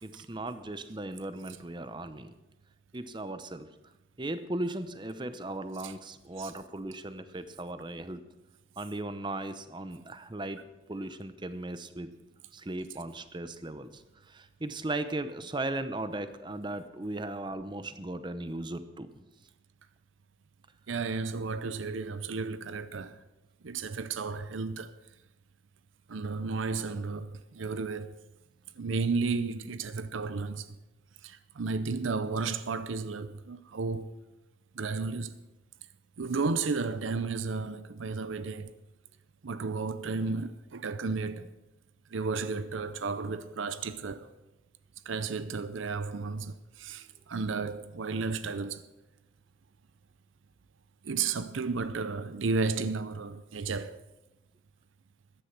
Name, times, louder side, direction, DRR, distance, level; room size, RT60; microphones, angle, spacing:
voice 1, 0.0-2.3 2.9-3.7 4.2-8.2 8.8-10.6 10.9-12.1 12.5-14.0 14.3-19.1, right 2 dB, 25° right, 0.7 m, -37 dB
voice 2, 20.9-23.2 23.6-25.0 26.1-28.1 28.8-30.8 31.2-34.2 34.8-35.4 36.2-38.7 39.4-41.5 42.1-44.3 45.1-48.9 51.0-54.0, right 4 dB, 85° right, 0.6 m, -33 dB
14.5 x 10.0 x 6.0 m
head